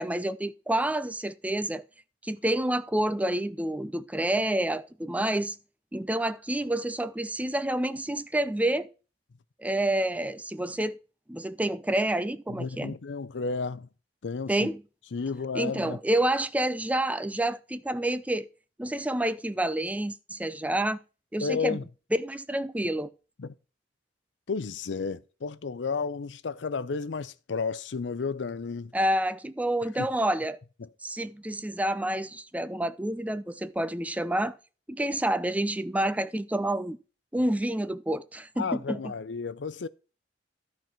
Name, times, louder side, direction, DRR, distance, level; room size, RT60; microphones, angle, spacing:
voice 1, 0.0-1.8 2.2-5.6 5.9-8.9 9.6-11.0 11.3-13.0 14.5-14.8 15.5-18.5 18.8-21.0 21.3-21.8 22.2-23.1 28.9-30.6 31.0-34.6 34.9-37.0 37.3-39.1, right 1 dB, 10° right, 0.5 m, -28 dB
voice 2, 12.5-13.9 14.2-14.7 15.1-16.0 21.4-21.8 23.4-23.5 24.5-28.9 30.0-30.1 30.8-30.9 38.6-39.9, left 5 dB, 85° left, 0.6 m, -32 dB
13.0 x 4.7 x 5.8 m
head